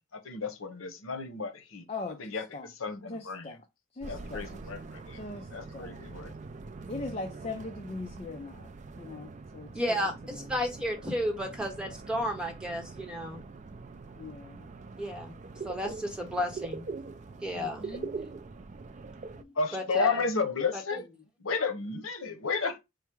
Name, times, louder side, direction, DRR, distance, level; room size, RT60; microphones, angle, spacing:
voice 1, 0.1-1.8 2.2-3.5 4.1-5.2 5.5-6.3 19.6-21.0 21.4-22.8, left 4 dB, 85° left, 0.9 m, -32 dB
voice 2, 1.9-2.7 3.1-3.6 3.9-4.6 5.1-6.1 6.9-10.5 14.1-14.7 17.5-18.1, left 3 dB, 30° left, 0.5 m, -41 dB
sound 1, 4.0-19.4, right 4 dB, 35° right, 0.3 m, -43 dB
voice 3, 9.7-10.1 10.5-13.4 15.0-15.4 15.6-16.9 17.4-18.0 19.4-20.2 20.7-21.0, left 1 dB, 5° right, 1.0 m, -33 dB
4.7 x 2.1 x 4.5 m
head